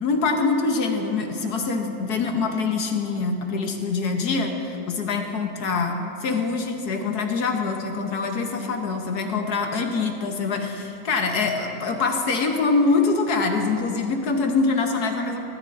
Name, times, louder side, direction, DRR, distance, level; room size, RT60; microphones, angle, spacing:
voice 1, 0.0-15.4, left 4 dB, 60° left, 3 dB, 1.3 m, -24 dB
20.5 x 13.5 x 2.6 m, 2.8 s
omnidirectional pair, 2.1 m